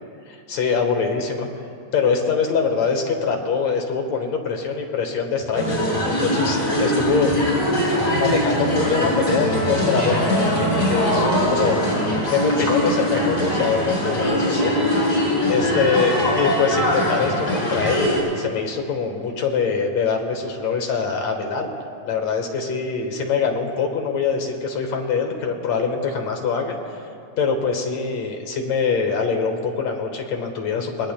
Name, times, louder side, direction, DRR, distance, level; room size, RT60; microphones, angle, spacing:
voice 1, 0.3-1.5 1.9-5.8 6.0-7.3 8.1-12.0 12.3-14.8 15.5-21.7 22.0-26.8 27.4-31.1, left 5 dB, 70° left, 3 dB, 2.5 m, -23 dB
sound 1, 5.5-18.2, equal, 40° left, 5.1 m, -21 dB
25.0 x 20.5 x 2.2 m, 2.5 s
omnidirectional pair, 3.4 m